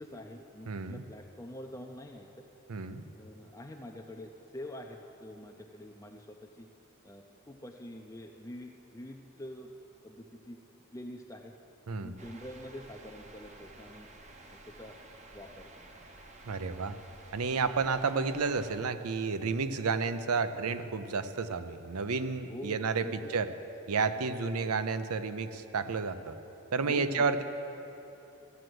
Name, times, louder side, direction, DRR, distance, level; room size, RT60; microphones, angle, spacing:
voice 1, 0.0-2.3 3.2-6.7 7.0-10.6 10.9-11.5 11.9-14.1 14.5-16.1 22.5-22.8 23.0-23.3 24.6-24.7 26.8-27.4, left 1 dB, 15° left, 2 dB, 0.4 m, -46 dB
voice 2, 0.7-1.0 2.7-3.0 11.9-12.2 16.4-17.0 17.3-23.0 23.3-23.5 23.9-26.3 26.7-27.4, right 4 dB, 85° right, 11 dB, 0.6 m, -31 dB
sound 1, 12.2-18.8, right 2 dB, 30° right, 0.7 m, -52 dB
14.0 x 7.7 x 7.8 m, 3.0 s
head